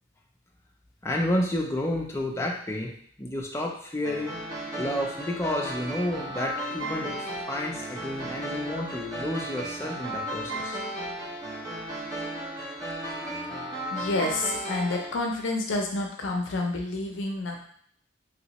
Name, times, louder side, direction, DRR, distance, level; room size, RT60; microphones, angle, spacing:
voice 1, 1.0-2.9 3.2-4.4 4.8-10.8 13.0-13.8, left 1 dB, 15° left, -1 dB, 0.4 m, -31 dB
sound 1, 4.0-15.1, right 1 dB, 20° right, 0.7 m, -35 dB
voice 2, 13.9-17.7, left 2 dB, 70° left, 2 dB, 0.5 m, -29 dB
3.0 x 3.0 x 2.9 m, 0.63 s
head